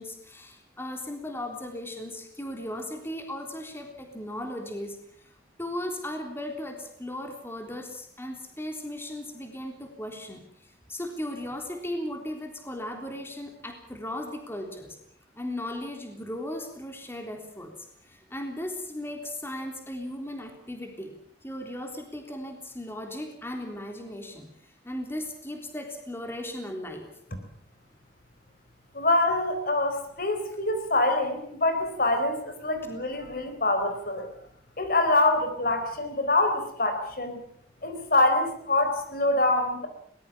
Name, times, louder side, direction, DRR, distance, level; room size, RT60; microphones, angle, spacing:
voice 1, 0.0-5.3 5.6-15.0 15.3-27.1, left 1 dB, 15° left, 3 dB, 3.6 m, -37 dB
voice 2, 28.9-34.3 34.8-37.4 37.8-39.9, left 2 dB, 55° left, 7 dB, 4.0 m, -25 dB
22.5 x 20.5 x 7.3 m, 0.64 s
head